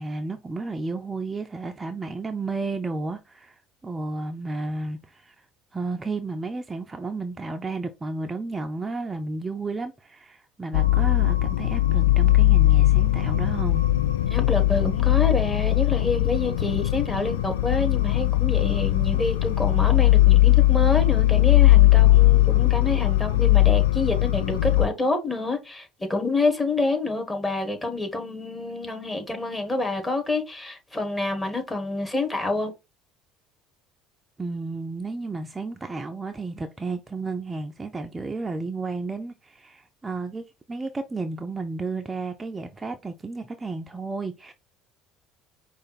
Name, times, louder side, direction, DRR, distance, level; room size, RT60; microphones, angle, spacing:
voice 1, 0.0-5.5 5.7-13.8 34.4-44.5, right 3 dB, 20° right, 0.5 m, -32 dB
sound 1, 10.7-24.9, left 16 dB, 70° left, 0.4 m, -19 dB
voice 2, 14.3-32.7, left 3 dB, 15° left, 1.4 m, -27 dB
5.0 x 2.4 x 4.1 m
figure-of-eight pair, 60°, 0 cm